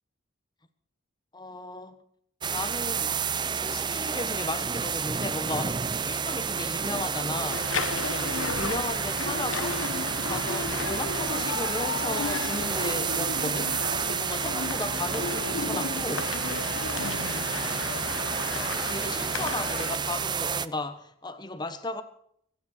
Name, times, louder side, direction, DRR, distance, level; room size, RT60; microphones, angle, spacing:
voice 1, 1.3-2.0 2.5-3.2 3.5-9.9 10.2-16.4 18.7-22.0, left 2 dB, 20° left, 1.1 m, -35 dB
Clara Hose cleaning floor, 2.4-20.7, right 6 dB, 20° right, 0.5 m, -30 dB
sound 1, 7.5-20.0, left 4 dB, 85° left, 1.1 m, -34 dB
26.0 x 9.6 x 4.4 m
head